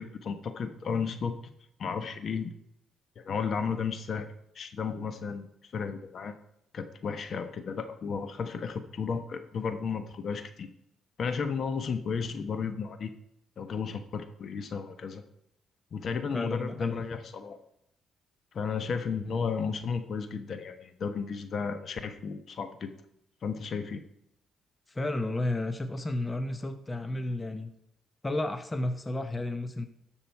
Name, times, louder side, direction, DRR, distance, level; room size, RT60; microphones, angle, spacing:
voice 1, 0.0-1.5 1.8-2.5 3.2-4.3 4.5-6.4 6.7-10.7 11.2-13.1 13.6-15.2 15.9-17.6 18.5-22.9 23.4-24.0, left 5 dB, 55° left, 9 dB, 1.1 m, -33 dB
voice 2, 16.3-17.0 24.9-27.7 28.2-29.9, left 2 dB, 20° left, 8 dB, 0.9 m, -32 dB
13.0 x 6.0 x 4.7 m, 0.78 s
cardioid pair, 90°, 0 cm